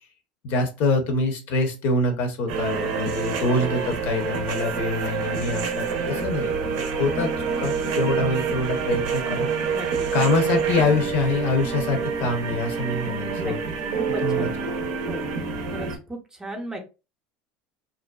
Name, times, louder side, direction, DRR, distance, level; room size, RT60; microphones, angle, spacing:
voice 1, 0.4-7.3 7.6-9.8 10.1-13.6 14.2-14.5, left 3 dB, 60° left, 5 dB, 0.7 m, -25 dB
sound 1, 2.5-16.0, right 5 dB, 70° right, 0.5 m, -27 dB
voice 2, 9.7-10.1 13.4-13.6 13.9-14.5 15.1-15.3 15.7-16.8, right 1 dB, 15° right, 3 dB, 0.6 m, -36 dB
2.5 x 2.2 x 2.2 m, 0.30 s
supercardioid pair, 105°, 4 cm